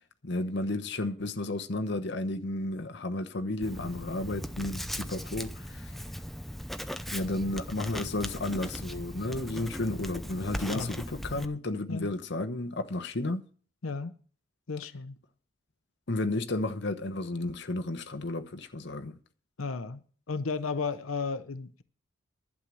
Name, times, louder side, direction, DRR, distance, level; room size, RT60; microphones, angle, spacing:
voice 1, 0.2-5.9 7.1-13.4 16.1-19.2, left 2 dB, 55° left, 1.0 m, -32 dB
Writing, 3.6-11.5, equal, ahead, 0.6 m, -38 dB
voice 2, 14.7-15.1 19.6-20.0 20.3-21.8, left 4 dB, 90° left, 0.8 m, -33 dB
11.5 x 7.4 x 7.7 m
head